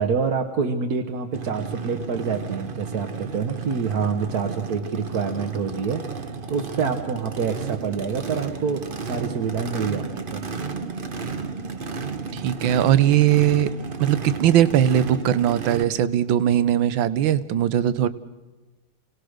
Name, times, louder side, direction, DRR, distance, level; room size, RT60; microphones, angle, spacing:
voice 1, 0.0-10.5, right 5 dB, 55° right, 4 dB, 1.5 m, -27 dB
Race car auto racing / Idling / Accelerating revving vroom, 1.3-15.8, right 5 dB, 35° right, 1.0 m, -33 dB
voice 2, 12.3-13.7 14.0-18.1, right 11 dB, 75° right, 15 dB, 1.6 m, -20 dB
29.0 x 18.5 x 6.5 m, 1.2 s
omnidirectional pair, 2.2 m